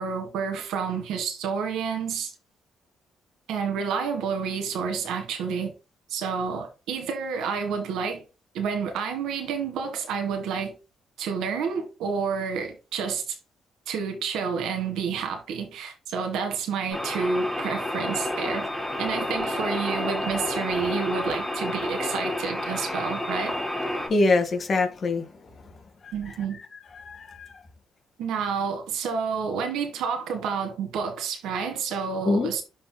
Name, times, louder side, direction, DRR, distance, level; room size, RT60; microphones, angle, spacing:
voice 1, 0.0-2.3 3.5-5.7 6.1-8.2 8.5-10.7 11.2-13.4 13.9-18.7 19.0-23.6 26.1-26.6 28.2-32.6, right 6 dB, 85° right, 1.7 m, -29 dB
sound 1, 16.9-24.1, left 1 dB, 5° left, 3.1 m, -30 dB
voice 2, 24.1-25.3 26.0-26.1 26.9-27.5 32.2-32.5, left 3 dB, 45° left, 1.7 m, -24 dB
12.0 x 4.3 x 2.3 m
cardioid pair, 90°, 0 cm